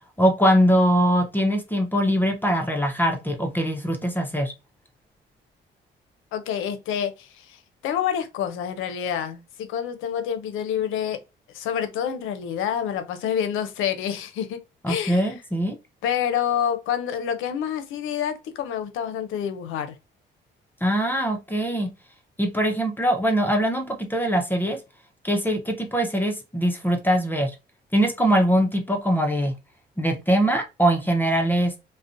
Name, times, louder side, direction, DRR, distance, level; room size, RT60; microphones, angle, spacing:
voice 1, 0.2-4.5 14.8-15.7 20.8-21.9 22.4-24.8 25.2-27.5 27.9-29.5 30.0-31.7, equal, 10° left, 0.5 m, -22 dB
voice 2, 6.3-11.2 11.5-14.6 14.9-15.3 16.0-19.9, left 9 dB, 85° left, 0.5 m, -28 dB
2.5 x 2.0 x 2.5 m
cardioid pair, 90°, 20 cm